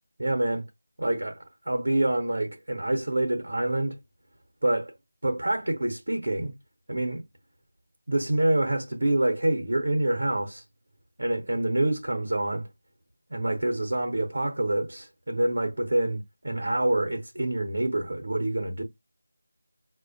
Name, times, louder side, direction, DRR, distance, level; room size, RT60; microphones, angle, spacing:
voice 1, 0.2-0.6 1.0-1.4 1.7-4.0 4.6-4.9 5.2-6.5 6.9-7.2 8.1-10.6 11.2-12.7 13.3-18.8, right 1 dB, 65° right, 0.7 m, -26 dB
4.7 x 2.1 x 2.5 m
figure-of-eight pair, 165°, 0 cm